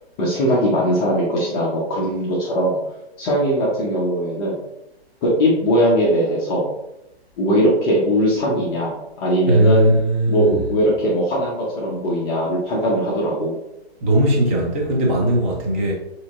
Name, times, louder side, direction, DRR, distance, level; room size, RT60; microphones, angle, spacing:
voice 1, 0.2-2.8 3.2-4.6 5.2-6.7 7.4-9.9 10.3-13.6, equal, 25° left, -6 dB, 0.8 m, -20 dB
voice 2, 9.4-10.6 14.0-15.9, right 1 dB, 10° right, -2 dB, 0.4 m, -18 dB
6.6 x 2.7 x 2.4 m, 0.90 s
hypercardioid pair, 155°, 32 cm